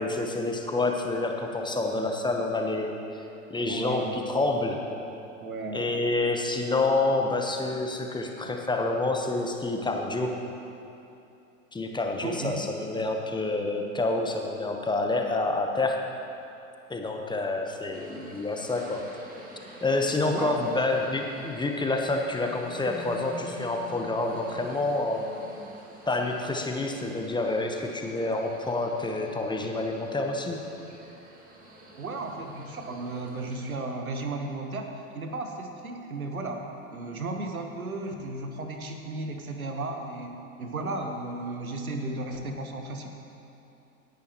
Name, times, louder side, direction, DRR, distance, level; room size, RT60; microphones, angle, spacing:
voice 1, 0.0-3.0 3.5-4.8 5.7-10.3 11.7-16.0 16.9-19.0 19.8-25.3 26.1-30.6, left 2 dB, 10° left, 2 dB, 1.1 m, -28 dB
voice 2, 3.7-4.1 5.4-5.9 12.2-12.6 20.2-20.6 32.0-34.9 35.1-36.7 36.9-43.1, right 2 dB, 90° right, 4 dB, 1.2 m, -34 dB
sound 1, 17.9-33.8, right 1 dB, 20° right, 2.0 m, -47 dB
18.0 x 10.5 x 3.1 m, 2.8 s
hypercardioid pair, 90°, 41 cm